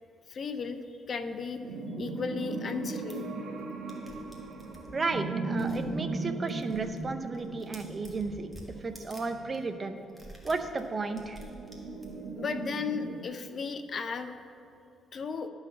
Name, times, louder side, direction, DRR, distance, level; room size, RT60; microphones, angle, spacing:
voice 1, 0.3-1.6 2.0-3.3 12.4-14.3 15.1-15.5, left 5 dB, 45° left, 9 dB, 0.5 m, -35 dB
sound 1, 1.6-13.2, right 3 dB, 70° right, 1.0 m, -38 dB
sound 2, 2.9-3.1 3.6-3.7 3.9-4.9 5.6-5.9 6.2-7.1 7.3-9.2 9.5-9.6 10.1-12.3, right 1 dB, 10° right, 1.6 m, -50 dB
voice 2, 4.9-10.0 10.4-11.4, right 3 dB, 35° right, 7 dB, 0.6 m, -34 dB
11.0 x 4.0 x 6.7 m, 2.6 s
cardioid pair, 90°, 0 cm